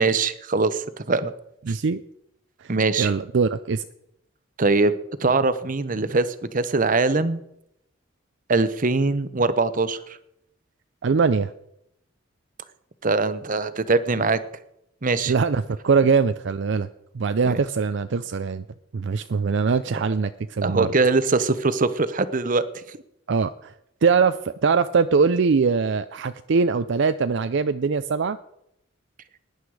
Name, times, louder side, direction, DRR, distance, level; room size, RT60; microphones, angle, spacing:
voice 1, 0.0-1.3 2.7-3.1 4.6-4.9 5.2-6.3 6.5-7.4 8.5-10.0 13.0-14.4 15.0-15.3 17.4-17.6 19.9-20.0 20.6-23.0, right 3 dB, 40° right, 13 dB, 0.8 m, -22 dB
voice 2, 1.7-2.0 2.6-2.7 3.0-3.9 11.0-11.5 15.3-16.9 17.1-18.6 18.9-20.9 23.3-23.7 24.0-28.4, right 5 dB, 60° right, 11 dB, 0.5 m, -22 dB
18.0 x 10.5 x 4.8 m, 0.79 s
head